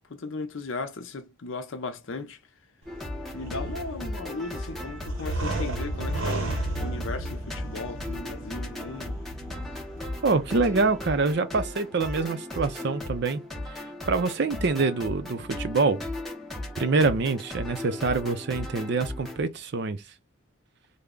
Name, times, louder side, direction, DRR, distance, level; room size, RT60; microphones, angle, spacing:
voice 1, 0.1-2.4 3.3-9.2, left 3 dB, 65° left, 0.6 m, -36 dB
sound 1, 2.8-11.3, right 1 dB, 75° right, 0.9 m, -34 dB
Nhiệm Vụ Hoàn Thành, 2.9-19.4, left 1 dB, ahead, 0.6 m, -37 dB
voice 2, 10.2-13.4 13.8-16.0 16.8-20.0, right 3 dB, 55° right, 0.5 m, -25 dB
3.3 x 2.1 x 3.7 m
head